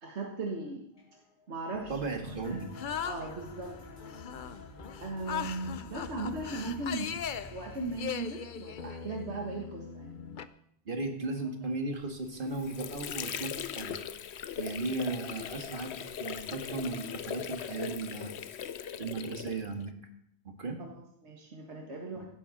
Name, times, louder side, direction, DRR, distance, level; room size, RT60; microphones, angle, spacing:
voice 1, 0.0-0.8 1.5-1.9 2.2-2.6 3.1-3.8 5.0-7.2 7.5-10.2 20.8-20.9 21.2-22.3, right 3 dB, 85° right, 0 dB, 1.9 m, -38 dB
sound 1, 0.9-8.0, right 1 dB, 20° left, 5.1 m, -51 dB
voice 2, 1.9-2.7 10.9-14.0 14.6-18.3 19.0-19.9 20.4-20.8 22.1-22.3, right 3 dB, 50° right, 4 dB, 2.1 m, -36 dB
sound 2, 2.4-10.5, left 7 dB, 55° left, 0.7 m, -40 dB
Water / Sink (filling or washing), 12.2-19.9, left 9 dB, 80° left, 1.0 m, -39 dB
16.0 x 12.0 x 4.2 m, 0.72 s
omnidirectional pair, 1.1 m